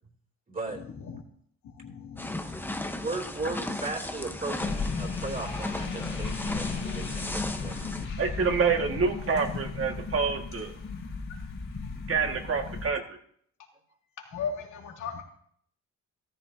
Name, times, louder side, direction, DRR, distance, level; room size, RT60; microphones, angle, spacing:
voice 1, 0.5-0.8 3.0-8.1, right 3 dB, 30° right, 1 dB, 3.2 m, -37 dB
voice 2, 1.6-2.9 14.2-15.2, left 6 dB, 80° left, 1 dB, 2.6 m, -38 dB
sound 1, 2.2-8.0, left 1 dB, 5° left, 1.1 m, -36 dB
sound 2, 4.6-12.9, left 4 dB, 45° left, 3.6 m, -35 dB
voice 3, 8.2-10.8 12.1-13.2, right 5 dB, 45° right, 3 dB, 2.0 m, -27 dB
14.0 x 13.5 x 2.8 m, 0.63 s
cardioid pair, 90°, 30 cm